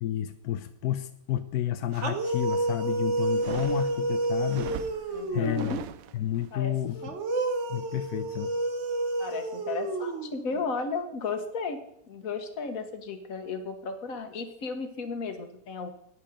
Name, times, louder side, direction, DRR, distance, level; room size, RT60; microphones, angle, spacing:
voice 1, 0.0-4.7 5.3-5.8 6.1-7.1 7.7-8.5, left 12 dB, 90° left, 10 dB, 1.1 m, -31 dB
sound 1, 1.9-5.7 7.0-10.6, right 2 dB, 55° right, 1.4 m, -30 dB
sound 2, 3.3-6.5, right 10 dB, 75° right, 1.0 m, -40 dB
voice 2, 5.1-5.8 6.5-7.1 9.2-15.9, left 4 dB, 65° left, 8 dB, 1.6 m, -34 dB
11.5 x 9.3 x 5.1 m, 0.77 s
omnidirectional pair, 1.6 m